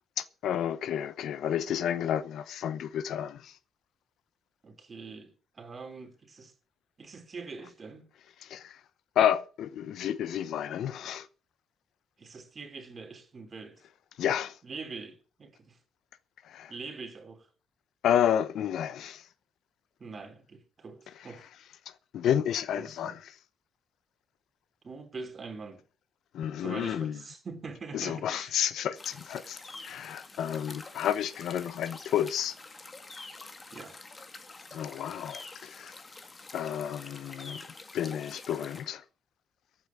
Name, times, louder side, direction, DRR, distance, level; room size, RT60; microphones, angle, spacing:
voice 1, 0.2-3.5 8.4-8.8 9.2-11.3 14.2-14.6 16.4-16.7 18.0-19.2 22.1-23.2 26.3-27.2 27.9-29.6 29.8-32.6 34.7-36.0 36.5-37.7 37.9-39.0, left 10 dB, 70° left, 0.9 m, -30 dB
voice 2, 4.6-6.5 7.0-8.1 12.2-13.8 14.6-15.8 16.7-17.5 20.0-21.5 22.7-23.2 24.8-25.8 26.6-28.5 33.7-34.0, right 4 dB, 30° right, 3.3 m, -43 dB
sound 1, 29.0-38.9, left 3 dB, 20° left, 1.9 m, -47 dB
14.5 x 8.7 x 7.1 m
cardioid pair, 160°, 0 cm